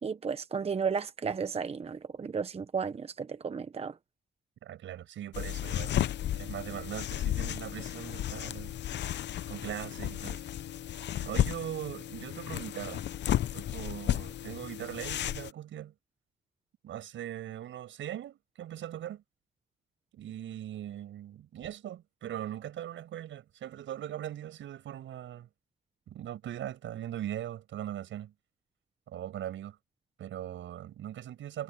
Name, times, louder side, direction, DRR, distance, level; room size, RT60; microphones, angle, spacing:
voice 1, 0.0-3.9, right 6 dB, 30° right, 0.9 m, -33 dB
voice 2, 4.6-6.1 6.3-8.8 9.5-10.4 11.2-13.0 13.5-15.9 16.8-19.2 20.1-25.5 26.1-28.3 29.1-29.8 30.2-31.6, right 11 dB, 75° right, 7.6 m, -40 dB
sound 1, 5.3-15.5, left 12 dB, 60° left, 0.7 m, -33 dB
cardioid pair, 90°, 20 cm